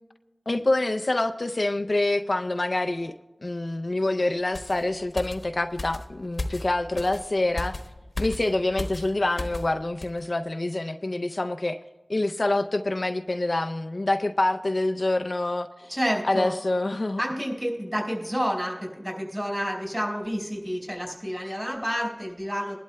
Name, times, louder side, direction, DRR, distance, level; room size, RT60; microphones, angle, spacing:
voice 1, 0.5-3.1 3.4-7.7 8.2-11.8 12.1-15.9 16.2-17.2, left 2 dB, 55° left, 7 dB, 0.4 m, -26 dB
sound 1, 4.5-9.7 10.0-10.2, left 2 dB, 90° left, 1.1 m, -36 dB
voice 2, 15.9-16.6 17.2-22.8, equal, 15° right, -2 dB, 4.1 m, -29 dB
21.0 x 11.5 x 2.2 m, 1.2 s
wide cardioid pair, 60°, 0 cm